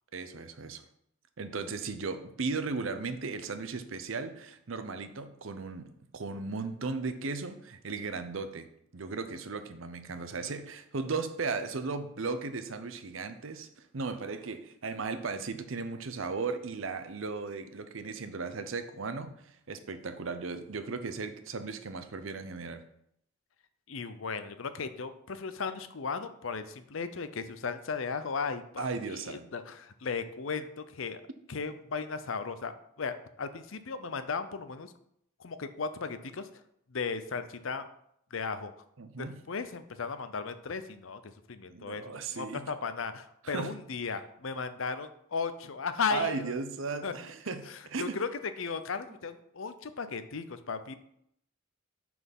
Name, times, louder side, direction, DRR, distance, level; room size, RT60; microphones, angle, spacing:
voice 1, 0.1-0.8 1.4-8.7 8.9-22.8 28.8-29.5 39.0-39.4 41.7-42.7 43.4-43.7 46.1-48.2, right 4 dB, 70° right, 10 dB, 0.7 m, -36 dB
voice 2, 23.9-31.2 31.5-34.9 35.4-36.5 36.9-37.9 38.3-38.7 39.2-41.2 41.5-46.5 47.0-47.1 47.7-50.9, left 5 dB, 70° left, 11 dB, 0.7 m, -36 dB
6.0 x 6.0 x 5.4 m, 0.73 s
head